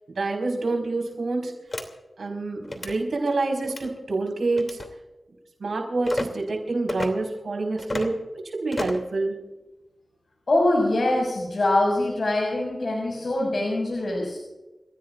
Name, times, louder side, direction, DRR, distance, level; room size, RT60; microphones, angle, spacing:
voice 1, 0.1-1.5 2.2-4.8 5.6-8.2 8.5-9.4, right 3 dB, 85° right, 0 dB, 4.9 m, -27 dB
sound 1, 1.7-1.9 2.6-2.9 3.6-3.9 4.6-4.9 6.0-6.3 6.9-7.1 7.8-8.1 8.7-9.1, left 2 dB, 40° left, 2.9 m, -30 dB
voice 2, 10.5-14.4, left 1 dB, 60° left, -2 dB, 6.1 m, -23 dB
29.0 x 16.0 x 2.5 m, 1.1 s
wide cardioid pair, 60°, 0 cm